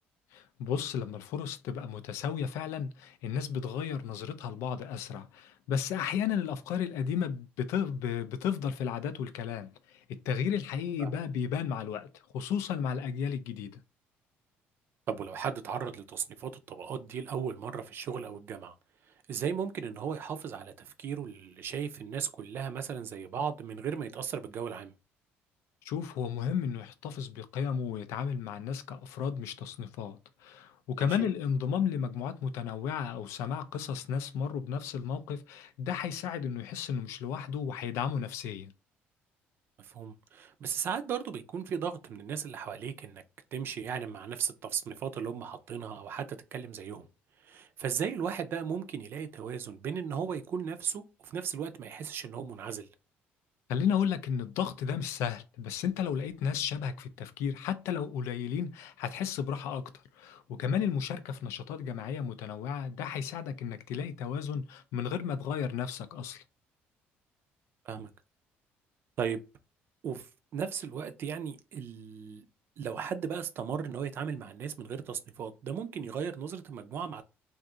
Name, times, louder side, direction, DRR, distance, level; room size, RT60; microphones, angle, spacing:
voice 1, 0.3-13.8 25.8-38.7 53.7-66.4, left 7 dB, 80° left, 0.4 m, -33 dB
voice 2, 15.1-18.7 19.3-24.9 31.0-31.3 39.8-43.2 43.5-47.1 47.4-52.9 67.8-68.1 69.2-69.4 70.0-72.4 72.8-77.2, right 7 dB, 55° right, 0.5 m, -36 dB
2.5 x 2.4 x 3.7 m
cardioid pair, 110°, 5 cm